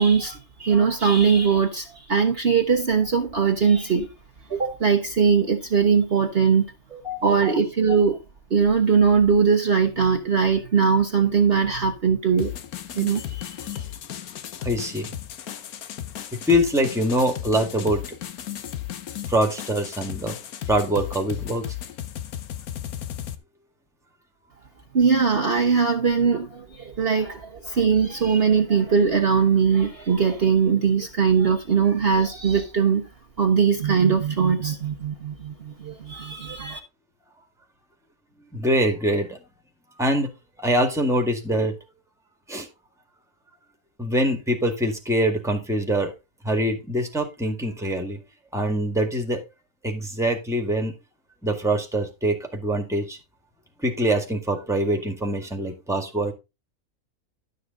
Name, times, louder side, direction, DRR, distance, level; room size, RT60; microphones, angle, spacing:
voice 1, 0.0-4.1 4.5-6.7 7.2-8.2 8.5-12.5 12.9-13.8 24.9-33.0 33.4-36.8, right 6 dB, 45° right, 1.4 m, -21 dB
voice 2, 6.9-7.6 14.6-15.1 16.3-18.0 19.3-20.4 20.7-21.7 38.5-39.4 40.0-40.3 40.6-41.8 42.5-42.7 44.0-46.1 46.4-48.2 48.5-49.4 49.8-50.9 51.4-53.2 53.8-56.3, right 1 dB, ahead, 1.9 m, -24 dB
sound 1, 12.4-23.4, left 11 dB, 85° left, 1.3 m, -35 dB
11.5 x 6.7 x 3.8 m
omnidirectional pair, 1.5 m